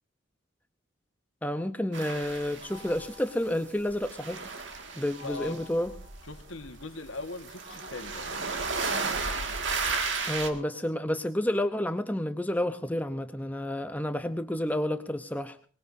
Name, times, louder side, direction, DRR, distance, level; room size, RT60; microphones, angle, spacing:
voice 1, 1.4-4.4 5.0-5.9 10.3-15.6, left 1 dB, 10° left, 0.7 m, -30 dB
sound 1, 1.9-3.6 3.8-10.5, right 4 dB, 70° right, 2.0 m, -34 dB
sound 2, 2.6-4.4 5.1-6.9 7.6-11.9, left 5 dB, 40° right, 3.6 m, -54 dB
voice 2, 5.2-5.5 6.3-8.4, left 3 dB, 85° left, 1.5 m, -40 dB
23.5 x 19.5 x 2.7 m
head